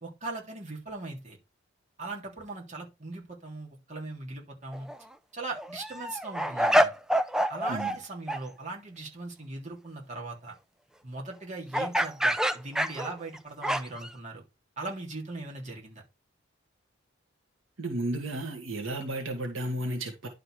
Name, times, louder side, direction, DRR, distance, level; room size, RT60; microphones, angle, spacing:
voice 1, 0.0-1.4 2.0-4.9 5.3-6.9 7.5-10.5 11.0-14.4 14.8-16.0, right 2 dB, 35° right, 3.3 m, -39 dB
sound 1, 4.7-5.0 5.4-8.0 8.3-8.4 11.7-14.1, equal, 5° right, 0.5 m, -27 dB
voice 2, 17.8-20.3, right 1 dB, 80° right, 1.8 m, -33 dB
11.0 x 4.1 x 4.9 m
head